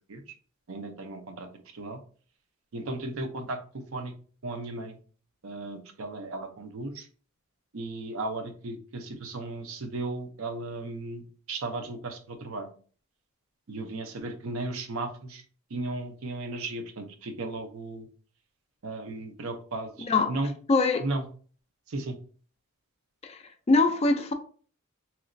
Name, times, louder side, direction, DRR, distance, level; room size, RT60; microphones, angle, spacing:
voice 1, 0.7-1.5 1.7-2.0 2.7-4.1 4.4-5.0 5.4-7.1 7.7-12.7 13.7-15.4 15.7-18.1 18.8-20.5 21.0-21.3 21.9-22.2, right 2 dB, 75° right, 0.6 m, -35 dB
voice 2, 20.7-21.0 23.2-24.3, left 3 dB, 30° left, 0.3 m, -23 dB
3.1 x 2.9 x 2.5 m
head